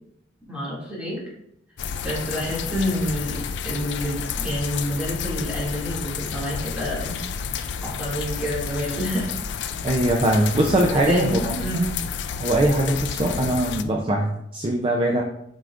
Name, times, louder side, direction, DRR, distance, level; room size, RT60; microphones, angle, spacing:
voice 1, 0.5-1.2 2.0-7.2 7.8-9.3 10.9-11.8, equal, 5° right, -6 dB, 2.3 m, -28 dB
sound 1, 1.8-13.8, left 6 dB, 65° left, 0.4 m, -30 dB
voice 2, 9.8-11.9 12.4-15.2, right 1 dB, 30° right, 0 dB, 0.5 m, -22 dB
7.7 x 5.0 x 2.5 m, 0.77 s
head